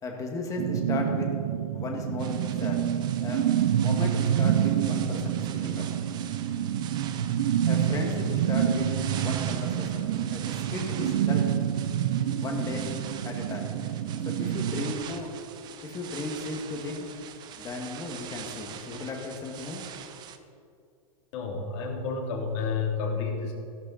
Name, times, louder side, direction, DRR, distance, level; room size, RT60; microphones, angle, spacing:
voice 1, 0.0-1.4 1.7-2.9 3.2-3.5 3.7-5.9 7.7-11.6 12.3-12.9 13.2-13.8 14.4-15.3 15.8-17.1 17.6-19.9, left 3 dB, 15° left, 1 dB, 1.9 m, -35 dB
sound 1, 0.6-14.9, right 9 dB, 70° right, 0.9 m, -27 dB
sound 2, 2.2-20.4, right 9 dB, 20° right, 0.7 m, -43 dB
voice 2, 21.3-23.5, left 5 dB, 50° left, 0 dB, 3.2 m, -30 dB
15.5 x 12.5 x 4.2 m, 2.5 s
supercardioid pair, 155°, 19 cm